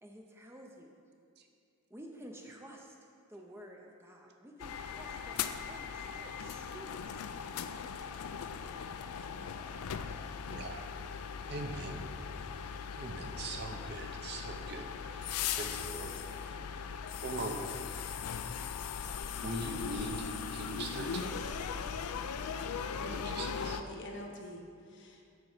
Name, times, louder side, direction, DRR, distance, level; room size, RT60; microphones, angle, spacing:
voice 1, 0.0-1.0 1.9-2.9 3.3-7.2 8.6-8.8 9.1-10.4, right 1 dB, 10° right, 1 dB, 0.5 m, -52 dB
sound 1, 4.6-23.8, left 7 dB, 90° left, 0.4 m, -39 dB
voice 2, 10.5-10.9 11.5-12.0 13.0-16.6 17.2-17.6 19.4-21.4 23.1-23.8, right 2 dB, 50° right, 4 dB, 0.7 m, -41 dB
voice 3, 22.9-24.6 24.9-25.2, left 1 dB, 55° left, 2 dB, 1.0 m, -45 dB
8.1 x 6.0 x 4.9 m, 2.3 s
head